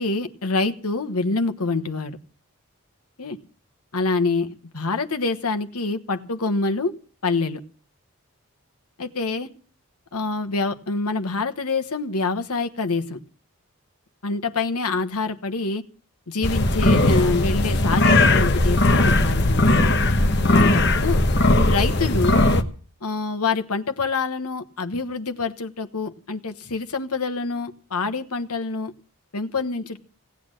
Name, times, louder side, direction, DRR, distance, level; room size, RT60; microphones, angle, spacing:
voice 1, 0.0-2.2 3.2-3.4 3.9-6.9 7.2-7.6 9.0-9.5 10.1-13.2 14.2-15.8 16.3-19.8 20.5-21.2 21.6-22.4 23.0-28.9 29.3-30.0, left 3 dB, 90° left, 8 dB, 1.3 m, -26 dB
sound 1, 16.4-22.6, left 2 dB, 50° left, 1.2 m, -18 dB
17.5 x 8.6 x 7.7 m, 0.41 s
head